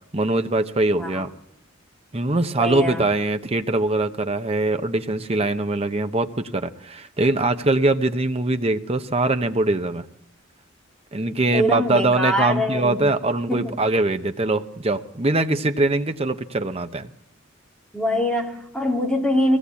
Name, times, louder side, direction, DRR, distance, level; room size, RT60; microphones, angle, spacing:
voice 1, 0.1-1.3 2.1-10.0 11.1-17.1, right 2 dB, 30° right, 8 dB, 1.0 m, -22 dB
voice 2, 2.6-3.0 11.5-13.0 13.5-13.7 17.9-19.6, left 1 dB, 5° left, 0 dB, 2.8 m, -23 dB
23.0 x 17.0 x 8.4 m, 0.76 s
head